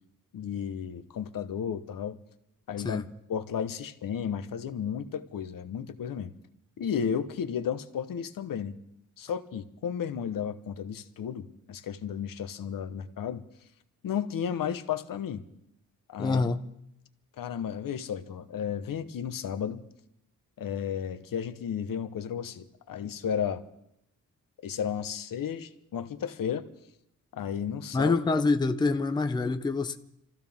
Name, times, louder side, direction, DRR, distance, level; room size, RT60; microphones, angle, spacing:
voice 1, 0.3-2.2 2.7-3.0 3.3-6.3 6.8-8.7 9.2-13.4 14.0-15.4 16.1-16.4 17.4-19.8 20.6-23.6 24.6-26.7 27.3-28.2, left 8 dB, 80° left, 1.0 m, -33 dB
voice 2, 16.2-16.7 27.9-30.0, left 3 dB, 15° left, 0.5 m, -26 dB
27.5 x 15.0 x 3.6 m
wide cardioid pair, 165°, 33 cm